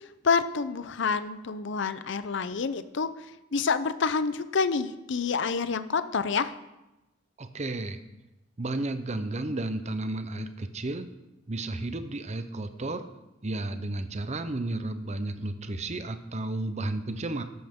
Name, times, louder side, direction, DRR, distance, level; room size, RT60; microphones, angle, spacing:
voice 1, 0.2-3.1 3.5-6.5, left 5 dB, 65° left, 12 dB, 0.6 m, -27 dB
voice 2, 7.4-8.0 8.6-11.1 11.5-13.0 13.4-17.4, right 2 dB, 35° right, 9 dB, 0.7 m, -32 dB
13.5 x 12.0 x 3.7 m, 0.97 s
head